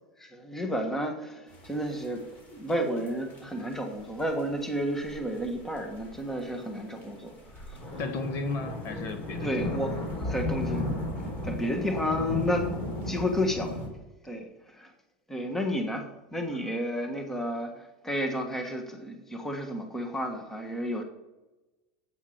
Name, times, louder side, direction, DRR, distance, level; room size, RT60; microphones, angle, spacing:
voice 1, 0.2-2.2 2.5-7.8 9.4-10.8 11.4-12.7 13.1-13.8 14.2-14.5 14.7-14.9 15.3-16.1 16.3-21.0, equal, 5° left, 4 dB, 1.4 m, -31 dB
sound 1, 1.5-13.9, left 1 dB, 30° left, 4.2 m, -36 dB
voice 2, 8.0-9.6 11.8-12.2 16.5-16.6, left 3 dB, 45° left, 7 dB, 1.6 m, -34 dB
8.5 x 8.4 x 7.1 m, 1.1 s
supercardioid pair, 140°, 6 cm